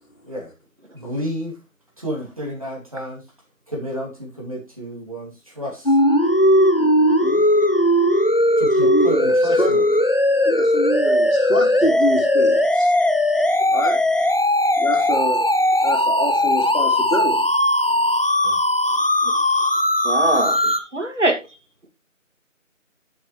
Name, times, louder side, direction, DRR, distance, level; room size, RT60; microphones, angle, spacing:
voice 1, 0.9-1.5 2.0-3.2 3.7-6.0 8.6-9.8 18.4-18.6, equal, 25° right, 2.6 m, -31 dB
sound 1, 5.9-20.8, left 1 dB, 45° left, 0.8 m, -18 dB
voice 2, 6.8-7.4 8.7-9.7 10.5-12.9 13.7-14.0 14.8-15.4 15.8-17.5, left 1 dB, 75° left, 3.6 m, -26 dB
voice 3, 20.0-21.4, right 1 dB, 60° right, 2.3 m, -22 dB
11.0 x 7.2 x 3.1 m
figure-of-eight pair, 180°, 41 cm